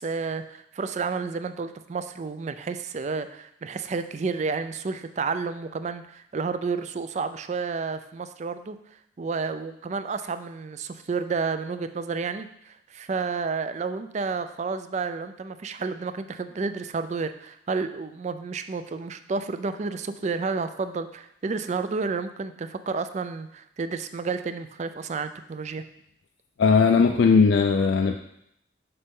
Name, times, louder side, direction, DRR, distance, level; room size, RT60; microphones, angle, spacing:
voice 1, 0.0-8.8 9.2-25.8, right 4 dB, 40° right, 11 dB, 0.4 m, -31 dB
voice 2, 26.6-28.2, left 5 dB, 80° left, 4 dB, 0.4 m, -18 dB
6.7 x 5.4 x 3.7 m, 0.75 s
head